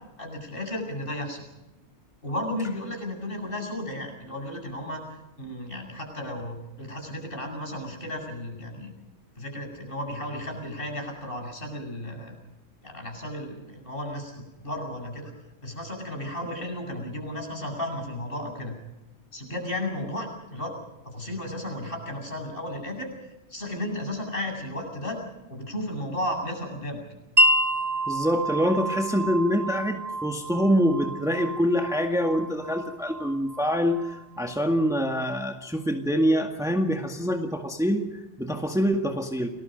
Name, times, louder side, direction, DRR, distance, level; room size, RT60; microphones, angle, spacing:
voice 1, 0.2-1.4 2.2-5.0 5.4-8.9 9.4-12.3 12.8-15.3 15.6-18.7 19.3-20.7 21.0-23.1 23.5-25.2 25.5-27.0, left 1 dB, 50° left, 2 dB, 8.1 m, -34 dB
Wind chime, 27.4-35.0, right 1 dB, 35° right, 1.2 m, -28 dB
voice 2, 28.1-39.5, equal, 5° right, 3 dB, 1.9 m, -25 dB
30.0 x 21.0 x 5.3 m, 0.97 s
omnidirectional pair, 1.2 m